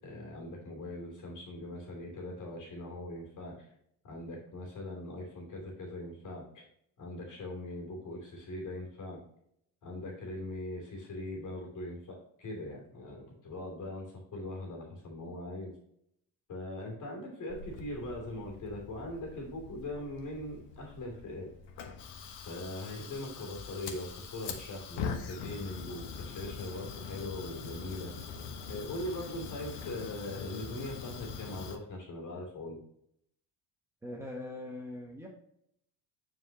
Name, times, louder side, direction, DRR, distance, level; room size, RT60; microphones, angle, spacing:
voice 1, 0.0-3.7 4.0-6.6 7.0-9.2 9.8-15.8 16.5-21.5 22.5-28.1 28.7-32.8, left 1 dB, 45° left, 0 dB, 2.8 m, -41 dB
Fire, 17.5-31.8, left 5 dB, 75° left, 1.3 m, -43 dB
voice 2, 34.0-35.3, left 2 dB, 5° right, -1 dB, 1.0 m, -41 dB
9.4 x 4.8 x 2.9 m, 0.72 s
cardioid pair, 140°, 41 cm